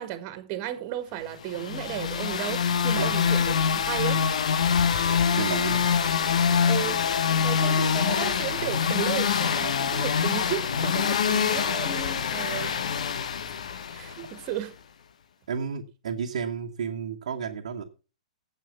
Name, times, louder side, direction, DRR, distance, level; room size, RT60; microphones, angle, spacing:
voice 1, 0.0-4.3 6.7-7.0 7.4-12.7 13.9-14.7, right 12 dB, 35° right, 1.8 m, -34 dB
sound 1, 1.5-14.4, left 7 dB, 60° left, 1.0 m, -25 dB
voice 2, 5.3-5.9 15.5-17.8, right 6 dB, 60° right, 1.3 m, -31 dB
9.2 x 8.2 x 5.6 m
figure-of-eight pair, 115°, 4 cm